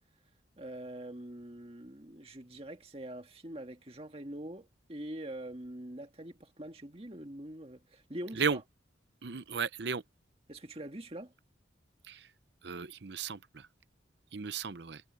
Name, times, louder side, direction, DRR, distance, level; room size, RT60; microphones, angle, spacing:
voice 1, 0.6-8.6 10.5-11.3, right 1 dB, 30° right, 2.0 m, -44 dB
voice 2, 9.2-10.0 12.1-12.3 12.6-13.7 14.3-15.0, right 5 dB, 65° right, 0.7 m, -35 dB
head